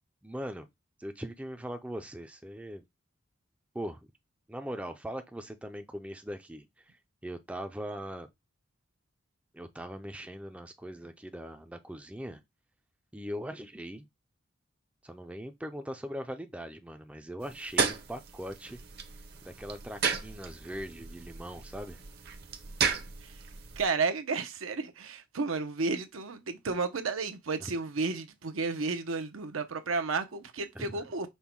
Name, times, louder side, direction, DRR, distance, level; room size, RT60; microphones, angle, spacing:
voice 1, 0.2-0.7 1.0-2.8 3.7-4.0 4.5-7.0 7.2-8.3 9.5-12.4 13.1-14.1 15.0-18.8 19.4-22.0 27.6-27.7 30.7-31.0, equal, 5° right, 0.4 m, -40 dB
sound 1, 17.4-23.9, right 6 dB, 50° right, 0.8 m, -34 dB
voice 2, 23.8-31.3, right 4 dB, 80° right, 0.7 m, -32 dB
5.4 x 2.2 x 4.5 m
head